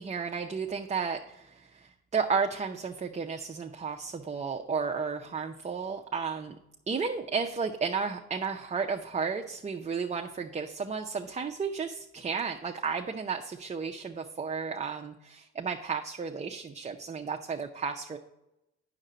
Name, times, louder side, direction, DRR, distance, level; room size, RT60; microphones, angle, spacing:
voice 1, 0.0-6.6 6.9-18.2, right 5 dB, 25° right, 3 dB, 0.6 m, -33 dB
8.7 x 6.6 x 3.9 m, 0.90 s
cardioid pair, 90°, 30 cm